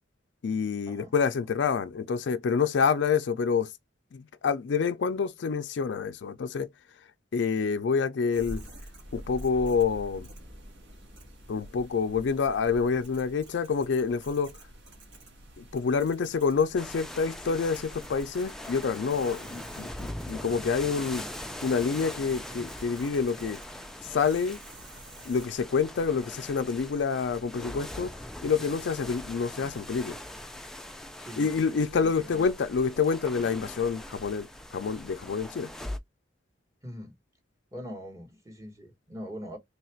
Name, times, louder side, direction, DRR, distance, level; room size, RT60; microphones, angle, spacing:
voice 1, 0.4-3.7 4.1-6.7 7.3-8.6 9.1-10.3 11.5-14.5 15.6-21.2 21.6-23.6 24.1-24.6 25.3-28.1 28.4-30.2 31.4-35.7, left 5 dB, 65° left, 0.4 m, -27 dB
sound 1, 8.3-25.5, right 1 dB, 75° right, 1.3 m, -48 dB
sound 2, 16.8-36.0, left 1 dB, ahead, 0.4 m, -42 dB
voice 2, 31.2-32.5 36.8-37.1 37.7-39.6, equal, 15° right, 1.1 m, -42 dB
3.3 x 2.4 x 4.3 m
head